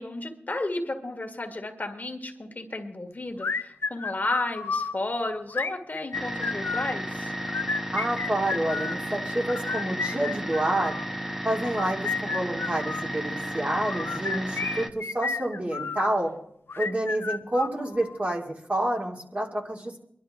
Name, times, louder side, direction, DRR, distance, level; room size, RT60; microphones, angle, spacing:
voice 1, 0.0-7.3, left 2 dB, 45° left, 5 dB, 1.8 m, -32 dB
sound 1, 3.4-4.9 5.5-6.9 7.4-9.0 9.5-11.1 11.6-13.1 13.8-16.1 16.7-18.2, left 4 dB, 85° left, 0.7 m, -32 dB
sound 2, 6.1-14.9, equal, 10° right, 1.2 m, -33 dB
voice 2, 7.9-11.0 11.4-16.3 16.8-20.0, right 1 dB, 40° right, 0 dB, 2.5 m, -28 dB
23.0 x 11.5 x 3.6 m, 0.68 s
cardioid pair, 45°, 4 cm